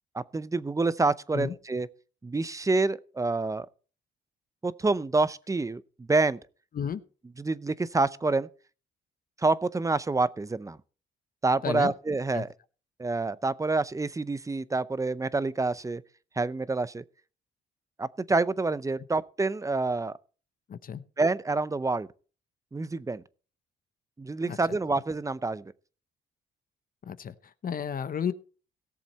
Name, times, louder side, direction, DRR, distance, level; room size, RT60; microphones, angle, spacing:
voice 1, 0.1-1.9 2.2-3.7 4.6-6.4 7.4-8.5 9.4-10.8 11.4-12.5 13.0-16.0 16.4-17.0 18.0-20.1 21.2-22.1 22.7-23.2 24.2-25.7, right 3 dB, 15° right, 0.6 m, -27 dB
voice 2, 20.7-21.0 24.5-24.8 27.0-28.3, left 7 dB, 45° left, 0.8 m, -33 dB
17.0 x 7.2 x 4.2 m
cardioid pair, 90°, 20 cm